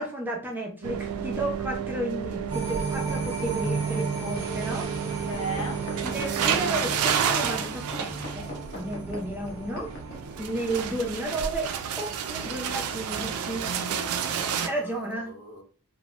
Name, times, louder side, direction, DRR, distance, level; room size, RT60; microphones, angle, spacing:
voice 1, 0.0-4.9 5.2-5.3 6.0-9.9 10.4-11.7 12.0-13.7 14.7-15.3, right 1 dB, 10° right, 0 dB, 0.4 m, -32 dB
sound 1, 0.8-14.7, right 7 dB, 85° right, 0.4 m, -31 dB
sound 2, 2.5-10.9 11.3-11.4, right 3 dB, 25° right, 0.9 m, -35 dB
voice 2, 5.3-5.8 13.7-15.6, right 2 dB, 85° left, 2 dB, 0.7 m, -38 dB
sound 3, 5.3-10.2 10.9-11.0, left 1 dB, 40° left, 0.7 m, -41 dB
2.6 x 2.1 x 3.0 m, 0.39 s
head